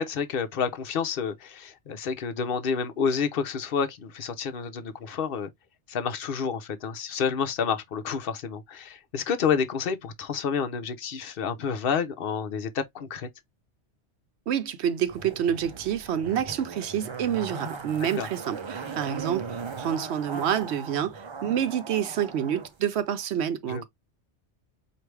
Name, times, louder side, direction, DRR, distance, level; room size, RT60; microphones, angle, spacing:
voice 1, 0.0-5.5 5.9-13.3 18.2-18.3 23.7-23.8, left 6 dB, 55° left, 0.9 m, -29 dB
voice 2, 14.5-23.8, right 9 dB, 70° right, 0.8 m, -28 dB
Zipper (clothing), 15.1-22.7 23.0-23.1, right 5 dB, 40° right, 0.4 m, -38 dB
4.6 x 2.5 x 3.3 m
omnidirectional pair, 1.2 m